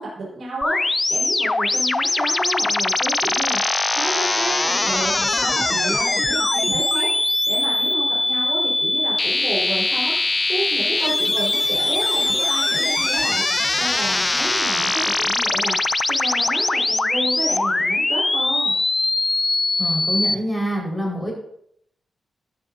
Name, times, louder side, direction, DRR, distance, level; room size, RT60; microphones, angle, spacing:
voice 1, 0.0-18.8, right 2 dB, 65° right, -5 dB, 4.6 m, -31 dB
sound 1, 0.6-20.3, left 2 dB, 25° left, 0.4 m, -21 dB
voice 2, 19.8-21.3, right 1 dB, 5° left, -2 dB, 4.8 m, -25 dB
13.0 x 11.5 x 2.7 m, 0.70 s
cardioid pair, 90°, 0 cm